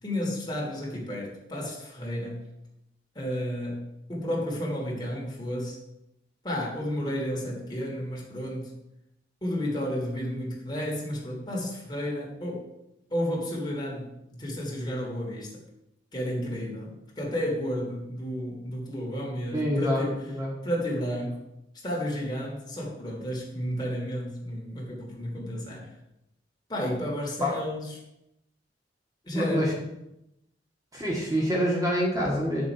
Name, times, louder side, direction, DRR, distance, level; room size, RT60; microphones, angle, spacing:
voice 1, 0.0-2.5 3.1-5.8 6.4-8.7 9.4-12.7 13.1-15.5 16.1-20.2 20.6-21.4 21.8-25.9 26.7-27.9 29.2-29.7, equal, 25° left, -3 dB, 3.0 m, -32 dB
voice 2, 19.5-20.1 20.3-20.5 27.4-27.5 29.3-29.7 30.9-32.7, equal, 20° right, -3 dB, 1.9 m, -26 dB
10.0 x 7.0 x 4.7 m, 0.85 s
head